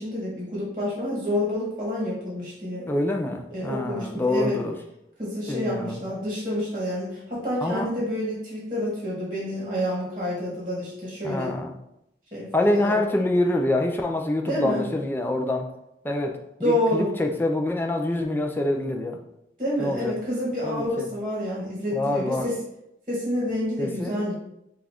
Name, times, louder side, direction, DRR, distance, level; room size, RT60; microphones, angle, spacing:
voice 1, 0.0-2.9 3.5-4.6 5.2-11.6 12.3-13.0 14.5-14.9 16.6-17.1 19.6-22.5 23.1-24.3, left 1 dB, 30° right, -5 dB, 1.3 m, -28 dB
voice 2, 2.9-4.8 5.5-6.0 7.6-7.9 11.2-11.7 12.5-15.7 16.0-16.4 16.6-19.2 19.8-20.1 20.6-21.1 21.9-22.5 23.8-24.1, left 1 dB, 10° left, 2 dB, 0.4 m, -26 dB
6.0 x 2.4 x 3.5 m, 0.82 s
head